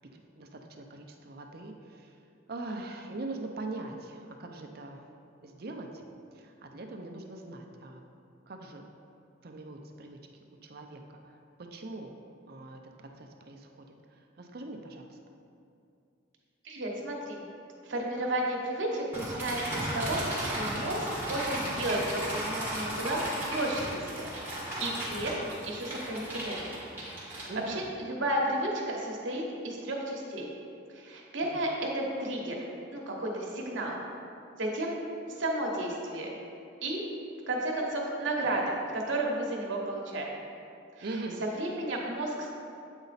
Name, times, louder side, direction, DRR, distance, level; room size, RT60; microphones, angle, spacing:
voice 1, 0.1-2.2 2.5-5.0 5.4-6.0 6.3-8.0 8.5-8.9 9.4-10.2 10.6-12.1 12.5-13.8 14.1-15.2 27.5-27.9 31.4-31.6 41.0-41.4, right 2 dB, 50° right, 3 dB, 0.6 m, -42 dB
voice 2, 16.6-17.4 17.8-26.6 27.2-30.5 30.9-32.6 32.9-34.0 34.6-34.9 35.3-36.3 36.8-37.1 37.5-40.3 41.0-42.5, right 1 dB, 70° right, -1 dB, 1.1 m, -33 dB
sound 1, 19.1-27.8, right 1 dB, 10° right, 1.6 m, -35 dB
8.0 x 4.1 x 4.0 m, 2.5 s
head